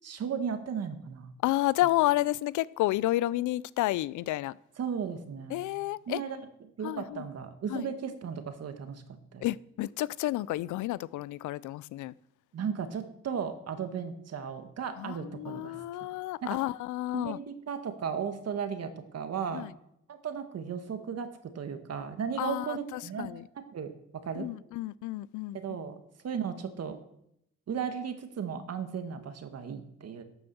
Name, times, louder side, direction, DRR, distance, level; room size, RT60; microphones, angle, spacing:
voice 1, 0.0-1.3 4.8-5.7 6.1-6.4 6.8-9.5 12.5-15.8 16.4-16.6 17.1-19.7 20.1-24.5 25.5-26.0 26.2-27.0 27.7-30.2, right 7 dB, 55° right, 1.7 m, -35 dB
voice 2, 1.4-4.6 5.5-6.2 6.8-7.3 7.7-7.9 9.4-12.1 15.0-17.4 19.5-19.7 22.4-23.4 24.4-25.6, left 16 dB, 80° left, 0.5 m, -31 dB
12.0 x 7.2 x 7.0 m
cardioid pair, 90°, 30 cm